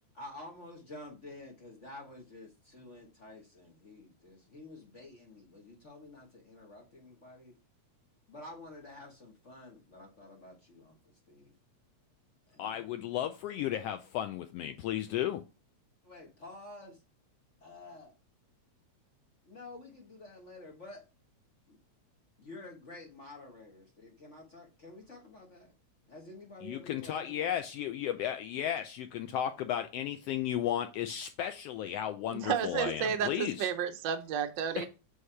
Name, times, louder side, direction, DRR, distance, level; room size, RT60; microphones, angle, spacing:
voice 1, 0.1-7.6 8.3-11.5 12.5-12.8 16.0-17.0 17.6-18.2 19.5-21.0 21.7-21.8 22.4-25.7 26.1-27.5, left 2 dB, 50° left, 0.8 m, -50 dB
voice 2, 12.6-15.4 26.6-33.7 34.8-34.9, left 11 dB, 85° left, 1.3 m, -34 dB
voice 3, 32.3-34.9, right 8 dB, 85° right, 1.0 m, -32 dB
8.2 x 3.2 x 5.5 m
omnidirectional pair, 3.3 m